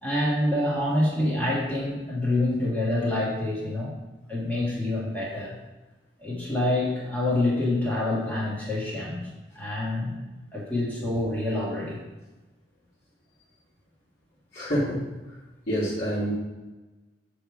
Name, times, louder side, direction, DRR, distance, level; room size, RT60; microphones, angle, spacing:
voice 1, 0.0-3.9 4.3-5.5 6.2-9.3 9.5-10.1 10.5-12.0, left 1 dB, 10° left, -6 dB, 1.5 m, -26 dB
voice 2, 14.5-15.4 15.7-16.3, equal, 55° left, -9 dB, 1.8 m, -27 dB
7.7 x 3.4 x 4.7 m, 1.1 s
head